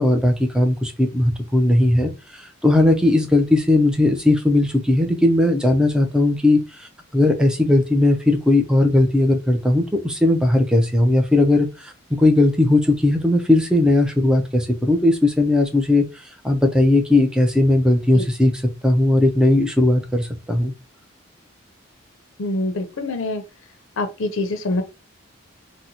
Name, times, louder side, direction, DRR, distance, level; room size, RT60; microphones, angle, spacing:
voice 1, 0.0-2.1 2.6-6.9 7.1-11.9 12.2-16.0 16.4-18.5 18.8-20.7, left 2 dB, 5° right, 0.5 m, -17 dB
voice 2, 22.4-23.4 24.0-24.8, left 2 dB, 70° left, 0.6 m, -25 dB
3.9 x 2.1 x 2.8 m
head